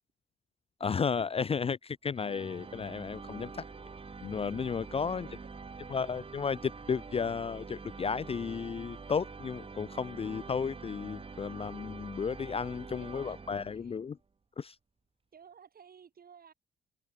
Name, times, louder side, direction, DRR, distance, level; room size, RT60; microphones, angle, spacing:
voice 1, 0.8-3.6 4.2-5.3 5.9-14.2 14.6-14.8, left 6 dB, 30° left, 0.5 m, -33 dB
sound 1, 2.1-14.1, right 4 dB, 30° right, 2.0 m, -46 dB
voice 2, 4.9-6.0 12.0-12.1 12.8-14.0 15.3-16.5, right 7 dB, 50° right, 4.7 m, -57 dB
open air
cardioid pair, 90°, 20 cm